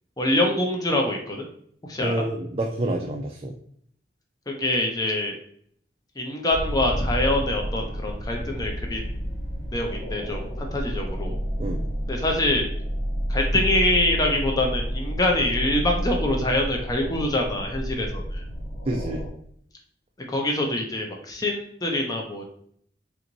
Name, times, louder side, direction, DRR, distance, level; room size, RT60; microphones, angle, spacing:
voice 1, 0.2-1.4 1.8-2.1 4.5-5.4 6.2-9.1 9.7-11.4 12.1-12.7 13.3-18.4 20.3-22.4, left 1 dB, 20° left, 1 dB, 0.6 m, -25 dB
voice 2, 2.0-3.5 11.6-11.8 18.9-19.2, right 1 dB, 35° right, 1 dB, 0.4 m, -28 dB
sound 1, 6.5-19.3, equal, 75° left, 1.7 m, -30 dB
3.5 x 3.0 x 3.8 m, 0.63 s
head